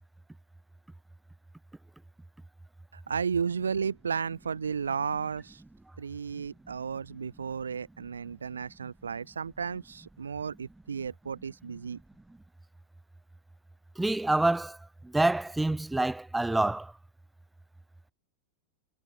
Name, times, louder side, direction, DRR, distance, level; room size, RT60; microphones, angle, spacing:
voice 1, 3.1-5.6 6.0-12.0, right 6 dB, 70° right, 2.8 m, -33 dB
voice 2, 14.0-14.8 15.0-16.9, right 2 dB, 5° right, 0.6 m, -27 dB
figure-of-eight pair, 90°, 0 cm